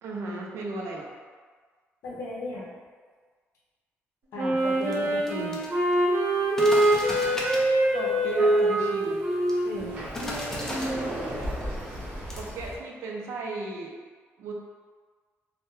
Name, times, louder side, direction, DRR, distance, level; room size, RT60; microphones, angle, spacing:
voice 1, 0.0-1.2 7.9-9.2 12.3-13.9 14.4-14.5, right 3 dB, 70° right, -1 dB, 0.4 m, -35 dB
voice 2, 2.0-2.7 4.3-5.6 9.6-10.0, left 1 dB, 75° left, -4 dB, 0.6 m, -35 dB
Wind instrument woodwind instrument, 4.4-11.1, right 1 dB, 55° right, 0.9 m, -24 dB
sound 1, 4.6-12.8, left 1 dB, 10° left, 0.3 m, -40 dB
Sliding door, 9.8-12.8, equal, 35° right, 0.7 m, -35 dB
2.2 x 2.1 x 3.0 m, 1.5 s
cardioid pair, 175°, 5 cm